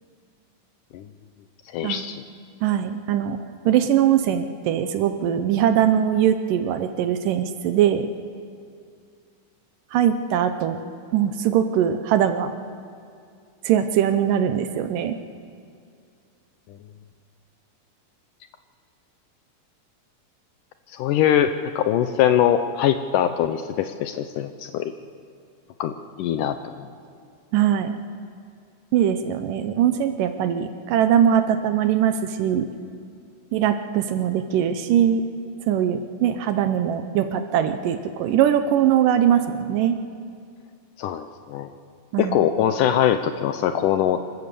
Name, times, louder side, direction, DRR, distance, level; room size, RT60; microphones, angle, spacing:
voice 1, 1.7-2.2 20.9-24.9 25.8-26.6 41.0-41.7 42.2-44.2, left 10 dB, 75° left, 9 dB, 2.0 m, -22 dB
voice 2, 2.6-3.4 3.7-8.1 9.9-10.8 11.1-12.5 13.6-15.2 27.5-28.0 28.9-32.7 33.5-35.2 35.7-40.0 42.1-42.4, right 9 dB, 75° right, 9 dB, 2.2 m, -21 dB
26.0 x 15.0 x 6.9 m, 2.3 s
omnidirectional pair, 4.2 m